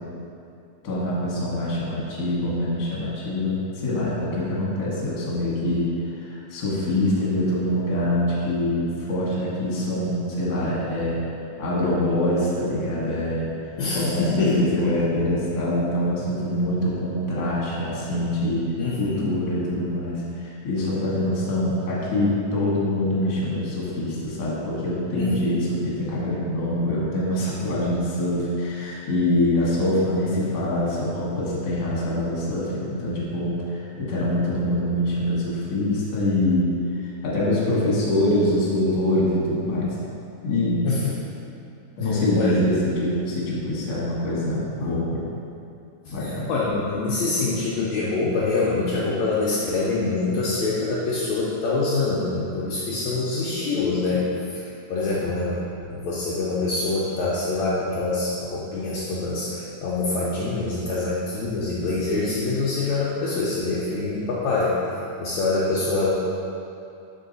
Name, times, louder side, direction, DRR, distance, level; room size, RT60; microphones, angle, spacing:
voice 1, 0.8-11.2 11.6-13.5 13.9-18.6 19.0-36.7 37.0-39.9 40.4-40.8 42.0-45.2 46.1-46.5, left 1 dB, 55° left, -7 dB, 1.5 m, -24 dB
voice 2, 13.8-14.6 18.8-19.3 25.2-25.5 40.8-41.1 42.3-42.5 44.8-44.9 46.2-54.2 54.9-64.8 65.2-66.1, left 3 dB, 80° left, -7 dB, 1.6 m, -25 dB
5.6 x 4.6 x 3.9 m, 2.6 s
omnidirectional pair, 4.0 m